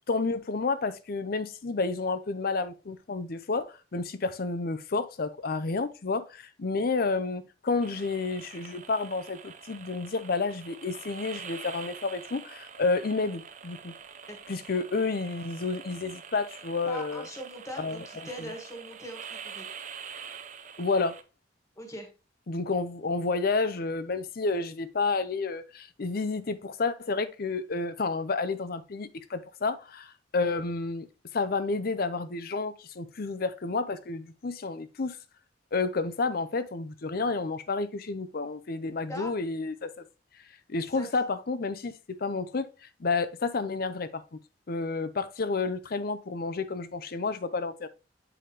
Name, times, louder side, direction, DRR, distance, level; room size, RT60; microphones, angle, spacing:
voice 1, 0.1-13.9 14.5-17.2 17.8-18.0 18.4-18.5 20.8-21.2 22.5-31.1 31.3-35.2 35.7-39.9 40.7-42.7 43.0-44.2 44.7-47.9, left 3 dB, 55° left, 0.6 m, -30 dB
sound 1, 7.8-21.2, right 7 dB, 40° right, 0.6 m, -45 dB
voice 2, 16.8-19.7 21.8-22.1 39.1-39.3 40.9-41.1, equal, 15° left, 1.5 m, -40 dB
7.8 x 4.9 x 2.9 m
head